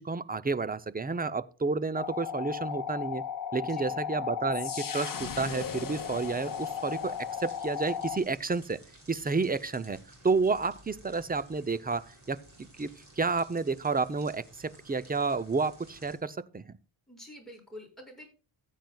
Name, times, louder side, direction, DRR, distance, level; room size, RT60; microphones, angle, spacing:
voice 1, 0.0-3.2 3.5-8.8 9.1-10.0 10.2-12.4 12.8-12.9 13.2-16.7, right 4 dB, 20° right, 0.6 m, -30 dB
sound 1, 1.9-8.2, left 8 dB, 40° left, 1.0 m, -35 dB
voice 2, 3.6-4.0 17.1-18.3, left 1 dB, ahead, 6.5 m, -48 dB
sound 2, 6.4-16.2, right 1 dB, 35° right, 5.1 m, -55 dB
15.0 x 9.3 x 2.3 m
wide cardioid pair, 90°, 49 cm